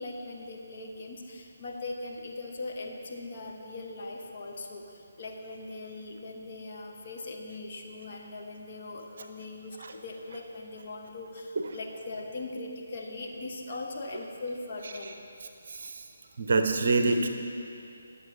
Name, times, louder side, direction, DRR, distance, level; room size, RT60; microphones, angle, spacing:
voice 1, 0.0-15.2, left 2 dB, 40° left, 1 dB, 1.0 m, -40 dB
voice 2, 15.7-16.0 16.4-17.3, right 3 dB, 50° right, 6 dB, 0.7 m, -25 dB
20.5 x 7.0 x 2.6 m, 2.6 s
figure-of-eight pair, 145°, 0 cm